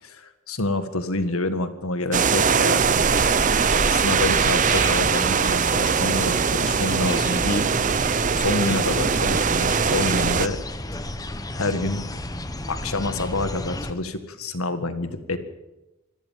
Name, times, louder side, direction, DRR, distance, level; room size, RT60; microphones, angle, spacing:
voice 1, 0.0-3.0 3.9-7.6 8.3-10.6 10.9-11.0 11.5-12.1 12.7-15.4, left 2 dB, 80° left, 10 dB, 1.9 m, -27 dB
sound 1, 2.1-10.5, right 6 dB, 35° right, 0.6 m, -21 dB
sound 2, 2.8-13.9, left 1 dB, 15° left, 1.2 m, -32 dB
25.5 x 14.5 x 7.5 m, 1.0 s
head